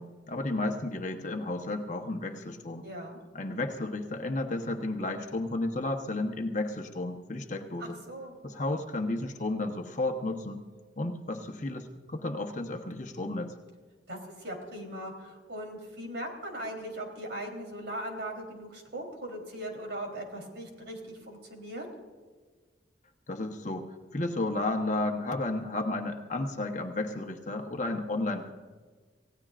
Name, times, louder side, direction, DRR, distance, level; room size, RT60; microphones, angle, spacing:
voice 1, 0.0-2.8 3.3-8.0 8.4-10.6 11.0-13.5 23.3-28.5, left 2 dB, 45° left, 3 dB, 1.0 m, -32 dB
voice 2, 2.8-3.2 7.8-8.3 14.1-21.8, right 1 dB, 70° right, 1 dB, 3.6 m, -39 dB
27.5 x 16.5 x 2.5 m, 1.4 s
head